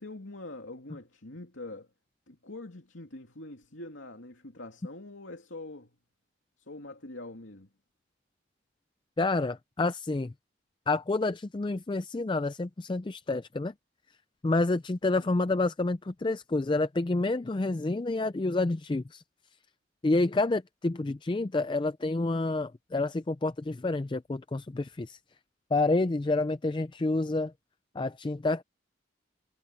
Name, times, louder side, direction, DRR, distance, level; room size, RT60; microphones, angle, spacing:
voice 1, 0.0-1.9 2.3-5.9 6.6-7.7, left 2 dB, 80° left, 2.7 m, -44 dB
voice 2, 9.2-10.3 10.9-13.7 14.4-19.2 20.0-25.2 25.7-27.5 28.0-28.6, left 2 dB, 25° left, 0.4 m, -28 dB
head